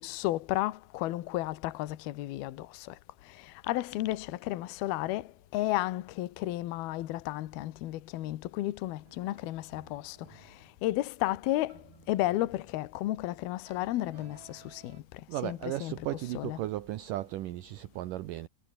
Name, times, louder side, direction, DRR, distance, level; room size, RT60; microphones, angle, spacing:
voice 1, 0.0-16.7, left 16 dB, 70° left, 2.8 m, -33 dB
sound 1, 9.0-15.0, right 6 dB, 50° right, 5.6 m, -58 dB
voice 2, 15.3-18.5, right 14 dB, 75° right, 2.0 m, -35 dB
omnidirectional pair, 5.1 m